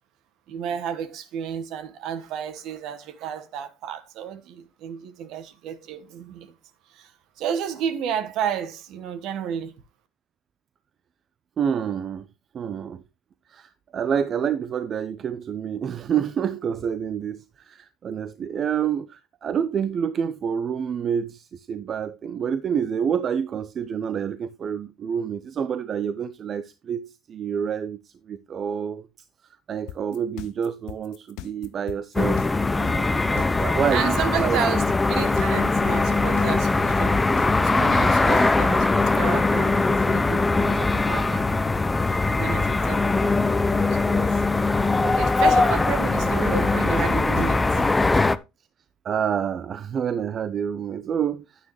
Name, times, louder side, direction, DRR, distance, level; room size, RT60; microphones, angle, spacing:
voice 1, 0.5-6.5 6.9-7.1 7.4-9.8 33.5-33.6 33.9-37.2 37.6-41.5 42.3-44.4 45.0-48.0, right 8 dB, 60° right, 1.3 m, -31 dB
voice 2, 11.6-12.2 12.5-13.0 13.5-29.0 29.7-32.4 32.8-34.6 37.9-38.1 49.0-51.4, right 8 dB, 40° right, 0.6 m, -28 dB
sound 1, 29.9-37.8, left 15 dB, 65° left, 0.5 m, -38 dB
sound 2, 32.2-48.4, left 3 dB, 15° left, 0.6 m, -21 dB
9.7 x 9.2 x 3.1 m
hypercardioid pair, 80°, 0 cm